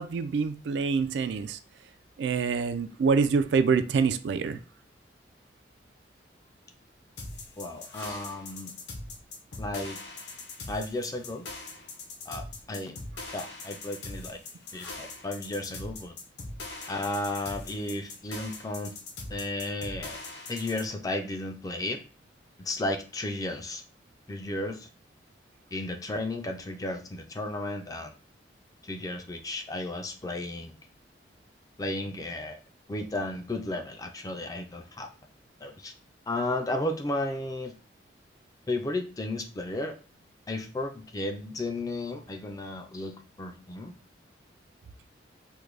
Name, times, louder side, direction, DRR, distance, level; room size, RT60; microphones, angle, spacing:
voice 1, 0.0-1.6 2.2-4.6, right 5 dB, 75° right, 10 dB, 0.3 m, -26 dB
sound 1, 7.2-20.9, left 3 dB, 70° left, 0.7 m, -41 dB
voice 2, 7.6-8.7 9.6-10.0 10.7-11.5 12.3-13.0 13.3-14.4 14.7-16.1 16.9-18.9 19.3-20.2 20.5-22.0 22.6-23.8 24.3-24.9 25.7-28.1 28.8-30.7 31.8-32.6 32.9-35.1 35.6-35.9 36.3-37.7 38.7-40.0 40.5-43.9, left 2 dB, 20° left, 5 dB, 0.3 m, -33 dB
3.6 x 2.1 x 3.2 m, 0.36 s
head